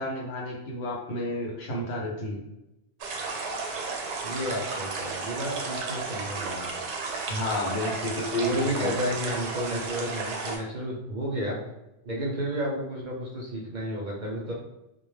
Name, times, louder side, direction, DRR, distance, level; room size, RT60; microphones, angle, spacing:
voice 1, 0.0-2.4 7.3-9.1, left 1 dB, 75° left, -2 dB, 0.9 m, -31 dB
sound 1, 3.0-10.6, right 4 dB, 80° right, 0.8 m, -33 dB
voice 2, 4.2-6.7 8.4-11.6 12.1-14.5, equal, 55° right, -3 dB, 0.6 m, -32 dB
2.2 x 2.1 x 3.2 m, 0.93 s
omnidirectional pair, 1.1 m